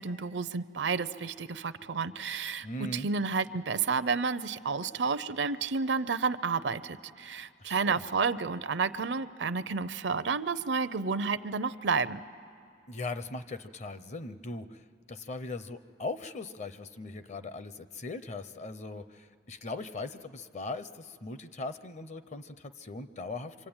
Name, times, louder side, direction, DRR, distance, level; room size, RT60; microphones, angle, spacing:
voice 1, 0.0-12.3, right 5 dB, 75° right, 14 dB, 0.6 m, -31 dB
voice 2, 2.6-3.1 7.6-8.0 12.9-14.8 15.1-23.7, left 2 dB, 40° left, 12 dB, 0.7 m, -39 dB
26.0 x 25.5 x 8.9 m, 2.3 s
head